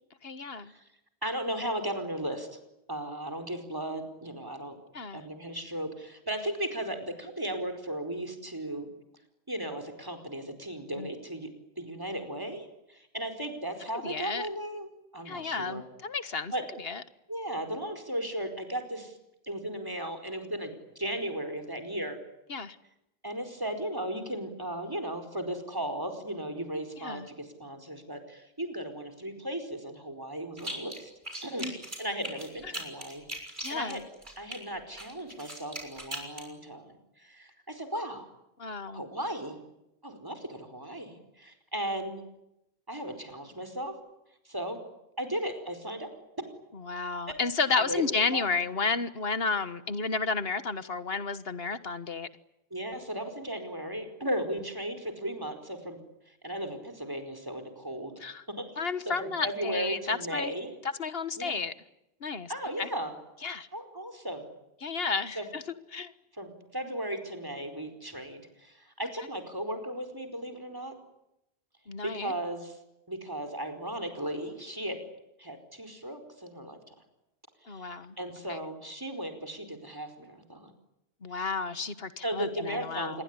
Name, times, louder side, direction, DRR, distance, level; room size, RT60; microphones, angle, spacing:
voice 1, 0.2-0.7 4.9-5.2 11.0-11.1 14.0-14.5 15.3-16.5 16.8-17.0 22.5-22.8 27.0-27.3 31.6-31.8 32.6-32.8 33.6-34.0 38.6-39.0 46.7-52.3 58.2-58.4 58.8-60.5 61.0-61.7 62.2-62.9 63.4-63.7 64.8-65.6 65.9-66.1 71.9-72.3 77.7-78.2 78.5-78.6 81.2-83.2, left 4 dB, 65° left, 13 dB, 1.7 m, -32 dB
voice 2, 1.2-2.5 2.9-4.8 5.1-8.9 9.5-11.5 11.8-15.8 16.5-16.6 17.3-19.2 19.4-22.2 23.2-31.1 31.4-31.7 32.0-34.0 34.4-38.3 38.9-39.6 40.0-42.2 42.9-44.0 44.4-44.8 45.2-46.1 47.3-47.4 47.7-48.0 48.3-48.5 52.7-56.0 56.3-58.1 58.5-58.7 59.1-60.7 61.4-61.6 62.5-63.1 63.7-64.5 65.3-65.5 66.4-71.0 72.0-72.8 73.1-75.0 75.4-76.9 77.6-80.7 82.2-83.2, right 1 dB, 20° right, 6 dB, 4.7 m, -36 dB
sound 1, 30.6-31.0 31.2-34.6 35.0-36.5, right 1 dB, 45° right, 6.6 m, -39 dB
27.5 x 22.0 x 9.8 m, 0.86 s
omnidirectional pair, 1.1 m